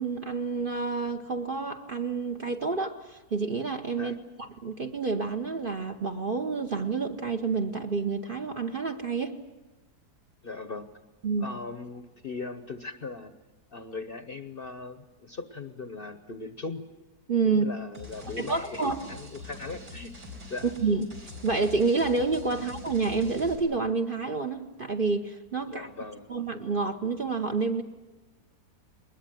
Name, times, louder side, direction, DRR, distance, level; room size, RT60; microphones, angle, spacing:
voice 1, 0.0-9.4 11.2-11.5 17.3-17.7 18.4-19.0 20.6-21.1 21.4-25.9 26.3-27.8, right 4 dB, 40° right, 4 dB, 1.0 m, -29 dB
voice 2, 10.4-10.9 11.4-13.3 13.7-16.9 17.4-20.1 20.5-20.7 25.7-26.3, left 3 dB, 40° left, 9 dB, 0.9 m, -39 dB
sound 1, 17.9-23.6, left 2 dB, 85° right, 5.5 m, -44 dB
21.5 x 20.5 x 9.2 m, 1.1 s
omnidirectional pair, 1.7 m